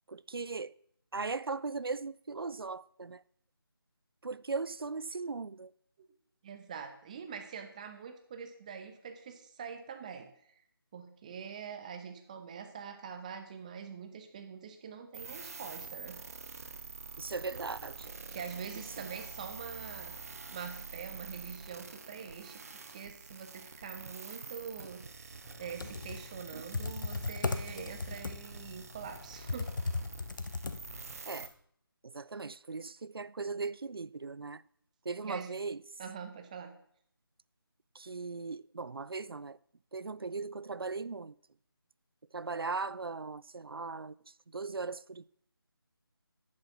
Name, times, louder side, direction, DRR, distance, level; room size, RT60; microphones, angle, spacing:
voice 1, 0.1-0.7 1.1-3.2 4.2-5.7 17.2-18.1 24.8-24.9 26.5-26.6 31.3-31.5 32.0-34.6 35.0-35.8 37.9-39.6 39.9-41.4 42.3-45.2, right 4 dB, 70° right, 0.5 m, -38 dB
voice 2, 6.4-10.6 10.9-16.2 18.3-29.7 30.0-30.1 35.2-35.5 36.0-36.7, right 6 dB, 20° right, 1.0 m, -44 dB
sound 1, 15.1-31.5, right 4 dB, 40° right, 1.2 m, -47 dB
Computer keyboard, 25.6-31.2, left 3 dB, 55° left, 1.0 m, -37 dB
10.5 x 8.7 x 5.9 m
figure-of-eight pair, 160°, 13 cm